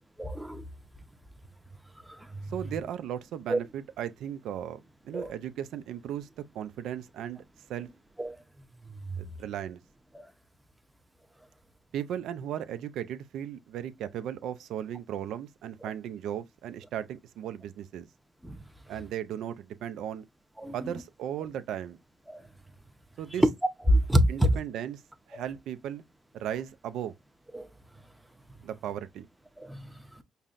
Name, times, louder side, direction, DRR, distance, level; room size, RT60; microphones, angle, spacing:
voice 1, 0.2-0.6 2.3-2.5 3.5-3.6 5.1-5.3 8.2-8.4 18.4-18.6 20.6-20.9 22.3-22.4 23.9-24.5 27.5-27.7 29.6-29.9, equal, 5° right, 0.6 m, -26 dB
voice 2, 2.5-4.8 5.0-6.3 6.5-7.4 7.7-7.9 9.2-9.8 11.9-18.1 18.9-20.3 20.7-22.0 23.2-23.4 24.3-25.0 25.3-26.0 26.3-27.1 28.6-29.3, right 10 dB, 85° right, 0.4 m, -36 dB
5.4 x 2.1 x 2.4 m
cardioid pair, 100°, 0 cm